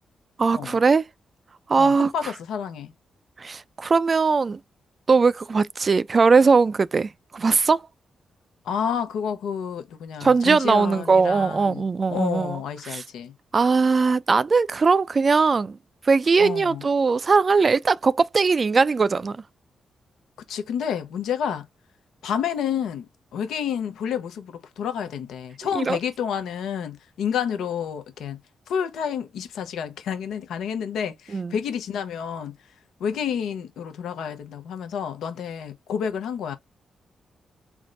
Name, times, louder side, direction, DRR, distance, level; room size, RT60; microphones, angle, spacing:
voice 1, 0.4-1.0 1.7-2.1 3.4-4.6 5.1-7.8 10.2-12.6 12.8-13.0 13.5-15.8 16.0-19.4 25.7-26.0 31.3-31.6, right 4 dB, 45° right, 0.4 m, -20 dB
voice 2, 1.8-2.9 8.6-13.3 16.4-16.8 20.5-21.7 22.2-28.4 28.7-32.6 33.0-36.6, left 8 dB, 80° left, 0.7 m, -29 dB
3.5 x 2.1 x 3.8 m
supercardioid pair, 45°, 0 cm